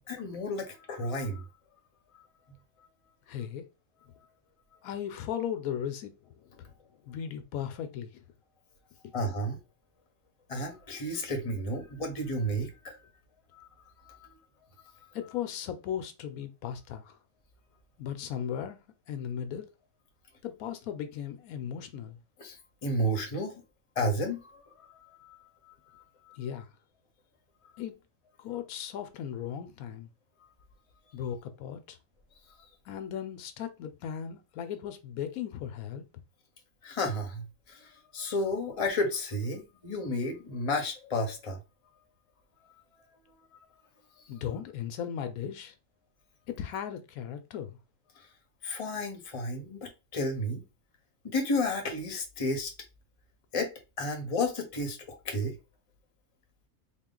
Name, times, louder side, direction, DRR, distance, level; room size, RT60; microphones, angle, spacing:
voice 1, 0.1-1.4 9.1-9.6 10.5-13.0 13.5-13.7 14.1-14.3 22.4-22.6 22.8-23.6 24.0-25.4 25.7-26.4 36.8-41.6 48.2-48.3 48.6-50.6 51.2-52.7 53.5-53.7 54.0-55.6, left 1 dB, 30° left, 0.8 m, -32 dB
voice 2, 3.3-3.7 4.8-6.7 7.0-8.1 15.1-17.2 18.0-18.8 19.1-19.7 20.4-22.2 26.4-26.7 27.8-28.0 28.4-30.1 31.1-32.0 32.9-36.0 44.3-45.7 46.5-47.8, left 9 dB, 80° left, 1.0 m, -37 dB
3.7 x 2.3 x 3.7 m
omnidirectional pair, 1.5 m